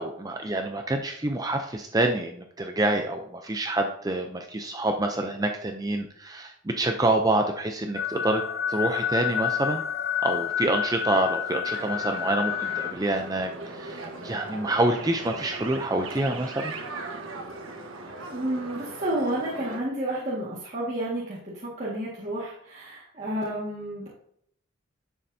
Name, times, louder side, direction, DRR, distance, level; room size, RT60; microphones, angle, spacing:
voice 1, 0.0-8.4 8.7-9.8 10.2-16.7, right 1 dB, 20° right, 4 dB, 0.5 m, -27 dB
sound 1, 7.9-12.9, left 8 dB, 50° left, 0.7 m, -29 dB
sound 2, 11.6-19.8, right 3 dB, 80° right, 1.4 m, -39 dB
voice 2, 18.3-24.1, right 1 dB, 35° right, -7 dB, 1.8 m, -31 dB
10.5 x 6.8 x 2.7 m, 0.69 s
head